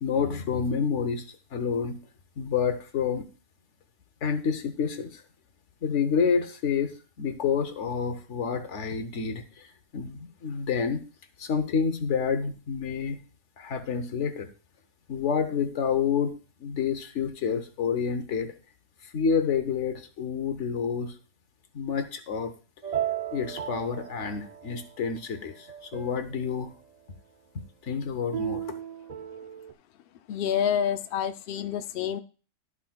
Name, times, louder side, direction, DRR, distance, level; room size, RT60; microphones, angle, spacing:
voice 1, 0.0-2.0 2.4-3.2 4.2-5.2 5.8-11.0 11.4-13.2 13.6-14.5 15.1-16.3 16.6-18.5 19.0-21.1 21.7-22.5 23.3-26.7 27.8-28.7, left 6 dB, 55° left, 9 dB, 1.1 m, -28 dB
sound 1, 22.8-25.0 25.5-26.6 28.3-29.7, right 10 dB, 70° right, 0.3 m, -35 dB
voice 2, 30.3-32.2, left 9 dB, 80° left, 10 dB, 0.5 m, -28 dB
12.5 x 5.9 x 2.3 m, 0.35 s
omnidirectional pair, 1.6 m